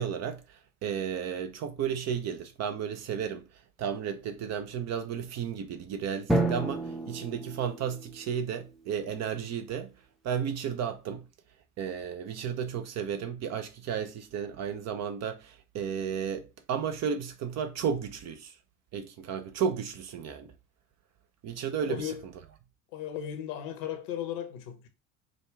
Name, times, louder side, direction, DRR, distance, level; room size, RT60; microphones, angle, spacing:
voice 1, 0.0-3.5 3.8-9.9 10.2-11.2 11.8-18.5 18.9-20.5 21.4-22.1, right 7 dB, 40° right, 0.7 m, -33 dB
Drum, 6.3-8.8, right 2 dB, ahead, 0.7 m, -31 dB
voice 2, 21.9-22.2 22.9-24.9, left 10 dB, 60° left, 1.1 m, -36 dB
5.1 x 2.3 x 3.3 m
hypercardioid pair, 75°, 42 cm